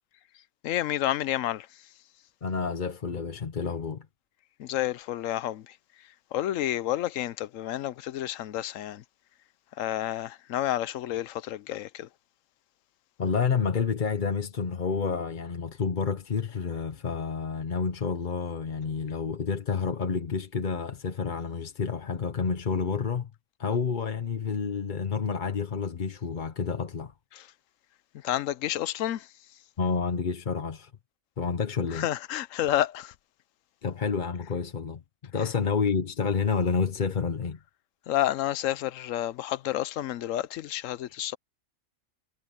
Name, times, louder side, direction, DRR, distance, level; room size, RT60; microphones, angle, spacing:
voice 1, 0.6-1.7 4.6-5.8 6.3-9.0 9.8-12.1 27.3-27.5 28.2-29.3 31.9-33.1 35.4-35.5 38.1-41.4, left 13 dB, 75° left, 1.0 m, -30 dB
voice 2, 2.4-4.1 13.2-23.3 23.6-27.1 29.8-30.9 31.4-32.1 33.8-35.0 35.3-37.6, left 5 dB, 40° left, 1.0 m, -29 dB
omnidirectional pair, 1.4 m